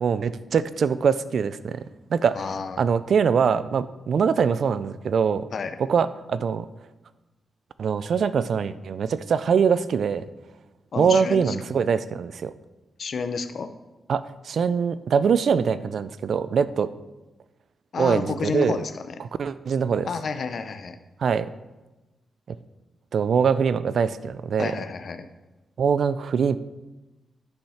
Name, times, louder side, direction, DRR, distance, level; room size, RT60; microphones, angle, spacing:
voice 1, 0.0-1.8 2.1-2.5 2.8-5.4 5.8-6.7 7.8-10.2 11.0-12.5 14.1-16.9 18.0-18.8 19.4-20.1 21.2-21.5 23.1-24.7 25.8-26.6, right 6 dB, 60° right, 15 dB, 0.4 m, -23 dB
voice 2, 2.4-2.8 5.5-5.8 10.9-11.5 13.0-13.7 17.9-19.1 20.1-21.0 24.6-25.3, left 5 dB, 50° left, 9 dB, 0.6 m, -30 dB
10.5 x 5.6 x 5.7 m, 1.1 s
wide cardioid pair, 150°, 0 cm